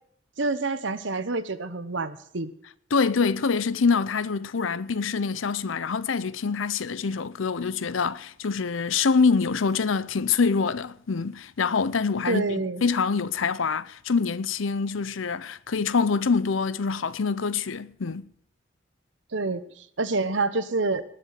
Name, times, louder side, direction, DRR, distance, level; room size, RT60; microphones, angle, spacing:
voice 1, 0.4-2.5 12.3-12.8 19.3-21.0, right 3 dB, 75° right, 1.0 m, -27 dB
voice 2, 2.9-18.3, left 5 dB, 85° left, 0.6 m, -25 dB
19.5 x 6.7 x 7.6 m
head